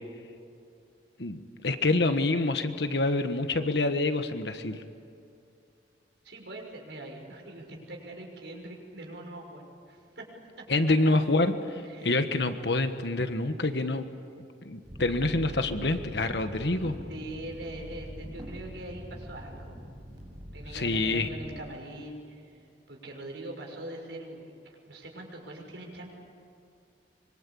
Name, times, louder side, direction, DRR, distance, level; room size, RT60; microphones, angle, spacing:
voice 1, 1.2-4.8 10.7-14.0 14.6-17.0 20.7-21.3, left 2 dB, 65° left, 8 dB, 1.4 m, -27 dB
voice 2, 6.2-10.3 10.6-10.7 11.8-12.2 17.1-19.8 20.5-26.1, right 1 dB, 75° right, 1 dB, 6.3 m, -42 dB
sound 1, 14.8-21.6, equal, 25° right, 7.2 m, -43 dB
25.5 x 24.0 x 8.6 m, 2.5 s
head